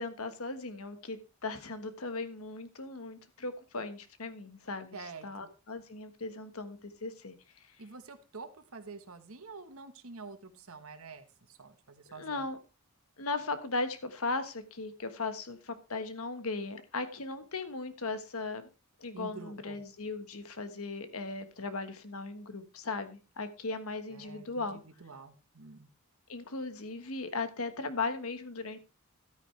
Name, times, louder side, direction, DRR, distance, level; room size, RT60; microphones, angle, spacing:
voice 1, 0.0-5.0 5.2-7.3 12.1-12.6 13.2-18.7 19.0-24.8 26.3-28.8, left 3 dB, 75° left, 9 dB, 1.3 m, -37 dB
voice 2, 4.9-5.5 7.8-12.5 19.1-19.8 24.1-25.9, right 4 dB, 75° right, 9 dB, 1.3 m, -48 dB
12.5 x 9.4 x 3.3 m, 0.31 s
head